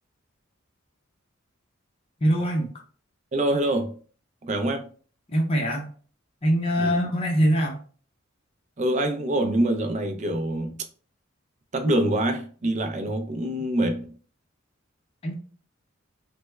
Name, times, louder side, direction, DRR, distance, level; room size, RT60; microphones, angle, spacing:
voice 1, 2.2-2.7 5.3-5.9 6.4-7.8 15.2-15.3, equal, 30° left, 0.6 m, -23 dB
voice 2, 3.3-4.0 4.4-4.9 6.8-7.0 8.8-10.8 11.7-14.1, right 1 dB, 35° right, 0.5 m, -25 dB
3.4 x 2.1 x 3.1 m
head